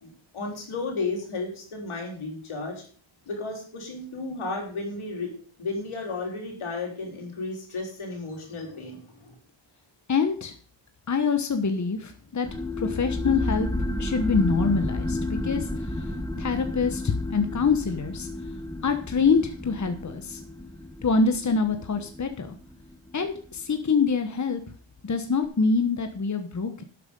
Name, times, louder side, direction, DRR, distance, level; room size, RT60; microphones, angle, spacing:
voice 1, 0.0-2.8 3.3-5.3 5.6-9.3, left 3 dB, 85° left, 1 dB, 4.2 m, -33 dB
voice 2, 10.1-10.5 11.1-12.5 12.8-13.7 14.0-16.1 16.4-18.3 18.8-20.4 21.0-22.5 23.1-24.6 25.0-26.8, left 5 dB, 35° left, 7 dB, 1.2 m, -25 dB
sound 1, 12.5-23.6, left 1 dB, 5° left, 1.5 m, -32 dB
11.5 x 8.2 x 5.4 m, 0.42 s
wide cardioid pair, 85°, 48 cm